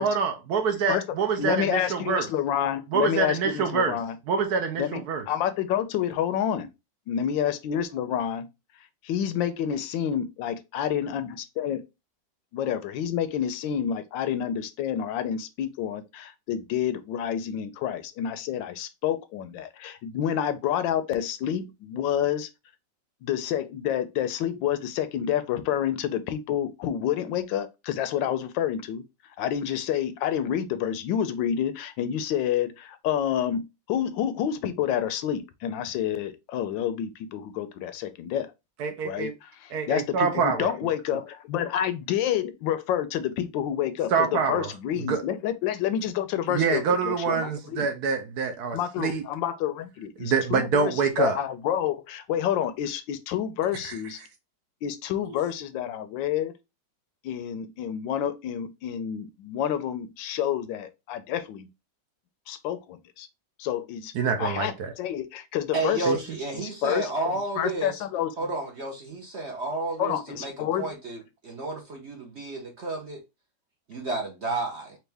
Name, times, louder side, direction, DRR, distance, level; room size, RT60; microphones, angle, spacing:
voice 1, 0.0-2.3 2.9-4.0 4.3-5.2 38.8-39.3 39.7-40.7 44.1-44.7 45.1-45.2 46.5-49.2 50.2-51.4 53.8-53.9 55.3-55.4 64.1-64.9 66.1-66.2, right 5 dB, 70° right, 1.1 m, -26 dB
voice 2, 1.4-4.2 4.8-6.7 7.1-8.5 9.0-11.8 12.5-22.5 23.2-29.0 29.4-38.5 39.0-47.9 48.7-54.2 54.8-56.6 57.2-61.7 62.5-63.3 63.6-64.1 64.4-66.1 66.5-67.1 67.6-68.3 70.0-70.9, left 10 dB, 85° left, 1.3 m, -29 dB
voice 3, 65.7-68.0 68.4-73.2 73.9-75.0, right 2 dB, 50° right, 0.8 m, -31 dB
4.4 x 2.5 x 3.3 m
omnidirectional pair, 2.0 m